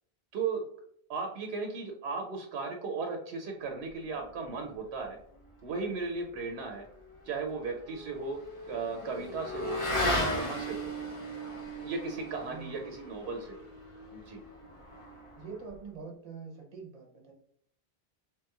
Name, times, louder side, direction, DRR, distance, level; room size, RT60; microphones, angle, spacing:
voice 1, 0.3-0.6 1.1-5.2 5.6-6.9 7.2-8.4 8.7-10.9 11.8-13.7 14.1-14.4, right 4 dB, 85° right, 2 dB, 0.8 m, -36 dB
Motorcycle / Accelerating revving vroom, 7.0-15.8, equal, 35° left, 0.6 m, -36 dB
voice 2, 15.4-17.3, right 5 dB, 40° right, 2 dB, 0.8 m, -44 dB
3.3 x 2.9 x 2.2 m, 0.67 s
omnidirectional pair, 1.1 m